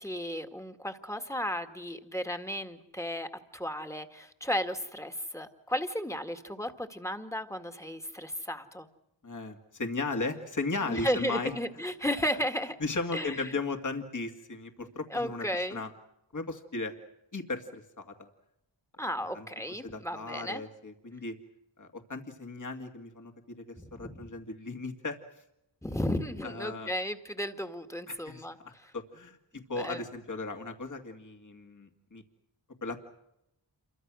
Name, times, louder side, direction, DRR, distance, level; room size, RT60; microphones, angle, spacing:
voice 1, 0.0-8.9 10.8-12.8 13.1-13.5 14.8-15.8 19.0-20.6 23.8-24.3 25.8-28.9 29.8-30.0, equal, 5° left, 7 dB, 1.9 m, -34 dB
voice 2, 9.2-11.5 12.8-15.9 16.3-17.0 17.3-18.3 19.3-19.5 19.8-21.4 21.8-23.3 23.7-25.2 26.4-26.9 28.1-32.2 32.8-33.0, left 3 dB, 45° left, 5 dB, 2.4 m, -36 dB
28.5 x 23.5 x 6.3 m, 0.84 s
wide cardioid pair, 85°, 43 cm